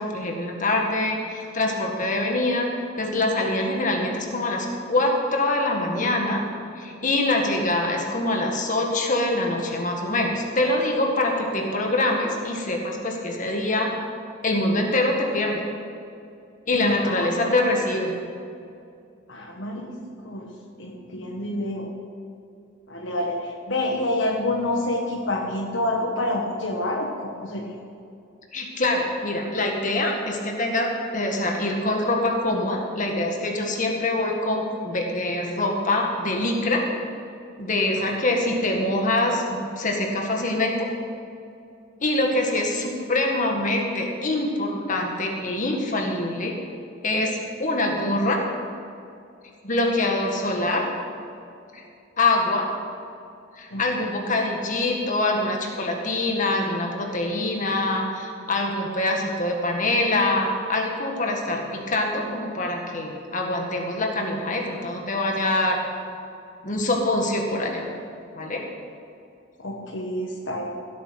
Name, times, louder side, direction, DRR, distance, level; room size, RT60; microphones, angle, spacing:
voice 1, 0.0-6.4 6.8-13.9 14.4-15.6 16.7-18.2 28.5-36.8 37.6-40.9 42.0-46.5 47.0-48.4 49.6-50.9 51.7-51.8 52.2-52.7 53.6-65.8 66.6-67.9 68.3-68.6, left 2 dB, 40° left, 1 dB, 1.8 m, -24 dB
voice 2, 16.7-17.6 19.3-20.0 20.2-20.5 20.8-21.9 22.9-27.6 37.9-38.1 53.7-53.8 69.6-70.7, left 1 dB, 65° left, 1 dB, 1.5 m, -28 dB
16.0 x 8.5 x 5.9 m, 2.5 s
head